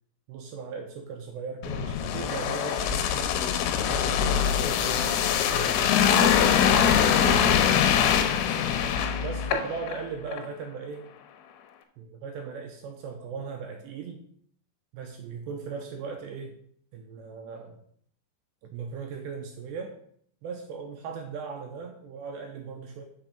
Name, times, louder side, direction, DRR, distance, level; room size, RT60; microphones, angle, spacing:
voice 1, 0.3-3.3 3.8-6.3 7.0-8.8 9.2-11.1 12.0-14.2 14.9-16.6 16.9-17.8 18.6-20.0 20.4-23.0, right 5 dB, 80° right, 3 dB, 2.7 m, -38 dB
sound 1, 1.6-10.0 10.3-10.5, left 8 dB, 85° left, 3.4 m, -23 dB
6.2 x 6.0 x 6.5 m, 0.64 s
omnidirectional pair, 5.7 m